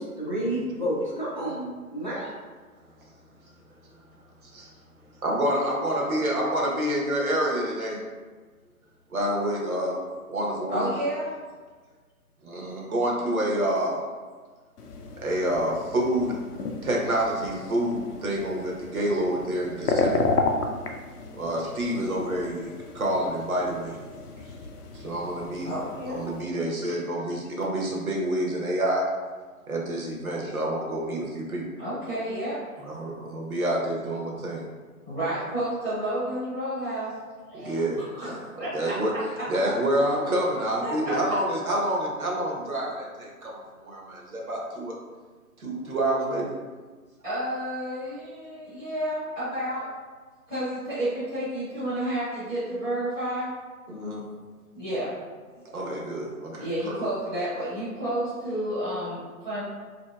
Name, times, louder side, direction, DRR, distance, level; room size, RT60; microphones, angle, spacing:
voice 1, 0.0-2.3, right 1 dB, 35° left, -7 dB, 0.4 m, -30 dB
voice 2, 5.2-8.0 9.1-10.0 10.3-10.9 12.4-14.0 15.2-16.4 16.8-20.2 21.4-24.0 24.9-25.7 26.1-29.1 29.7-31.7 32.8-34.6 37.5-39.1 39.5-44.9 45.6-46.5 53.9-54.2 55.7-56.9, right 1 dB, 70° right, -2 dB, 0.8 m, -28 dB
voice 3, 10.7-11.3 25.6-26.3 31.8-32.6 35.0-37.1 37.5-37.8 38.1-38.9 40.8-41.1 47.2-49.8 50.5-53.5 54.7-55.1 56.6-59.6, right 1 dB, 5° right, -16 dB, 0.7 m, -30 dB
sound 1, 14.8-26.4, left 3 dB, 85° left, 0.5 m, -33 dB
3.0 x 2.7 x 2.2 m, 1.4 s
figure-of-eight pair, 145°, 45 cm